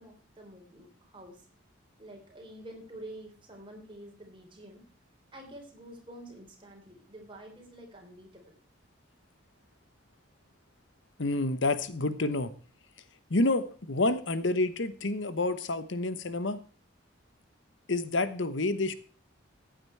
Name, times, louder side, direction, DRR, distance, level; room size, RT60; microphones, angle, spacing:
voice 1, 0.0-1.5 2.0-4.9 5.3-8.6, right 1 dB, 25° right, 2 dB, 3.9 m, -48 dB
voice 2, 11.2-12.5 13.3-16.6 17.9-18.9, left 2 dB, 65° left, 14 dB, 1.0 m, -28 dB
15.0 x 8.9 x 4.6 m, 0.43 s
head